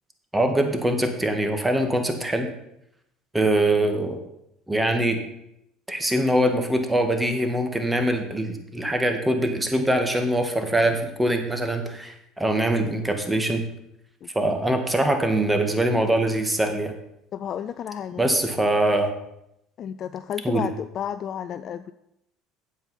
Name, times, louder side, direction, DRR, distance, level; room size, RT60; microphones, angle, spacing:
voice 1, 0.3-2.5 3.3-4.2 4.7-5.2 5.9-13.6 14.3-16.9 18.2-19.1 20.4-20.7, right 1 dB, 10° right, 5 dB, 2.0 m, -23 dB
voice 2, 14.2-14.5 17.3-18.2 19.8-21.9, left 9 dB, 50° left, 12 dB, 0.4 m, -32 dB
8.9 x 7.7 x 5.7 m, 0.80 s
hypercardioid pair, 70°, 0 cm